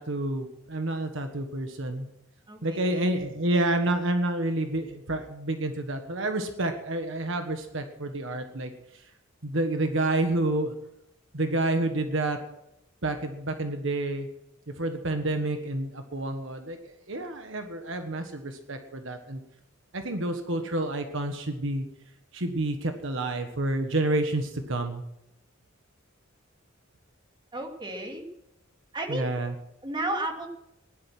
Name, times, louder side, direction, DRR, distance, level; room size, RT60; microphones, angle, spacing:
voice 1, 0.0-2.1 2.6-9.0 9.4-10.7 11.3-12.4 13.0-14.3 14.8-16.8 17.1-19.4 19.9-21.9 22.3-25.0 29.1-29.5, right 2 dB, 70° right, 6 dB, 1.5 m, -29 dB
voice 2, 2.5-3.1 20.6-20.7 27.5-28.3 28.9-29.4 29.8-30.5, right 2 dB, 25° right, 2 dB, 2.4 m, -33 dB
16.5 x 11.5 x 6.0 m, 0.84 s
head